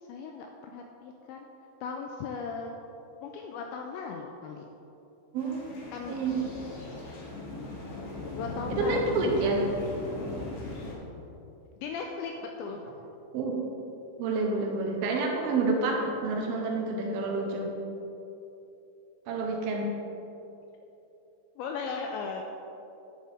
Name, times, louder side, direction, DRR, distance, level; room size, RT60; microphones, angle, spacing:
voice 1, 0.1-1.5 1.8-2.8 3.2-4.7 5.9-6.2 8.4-9.5 11.8-12.3 12.6-12.8 21.6-22.4, left 5 dB, 85° left, 2 dB, 2.6 m, -37 dB
voice 2, 5.3-5.7 6.1-6.3 8.8-9.7 13.3-13.6 14.2-17.7 19.3-19.9, right 3 dB, 80° right, 0 dB, 2.2 m, -28 dB
sound 1, 5.4-10.9, left 2 dB, 65° left, 3.9 m, -38 dB
10.0 x 9.5 x 3.6 m, 2.9 s
omnidirectional pair, 5.7 m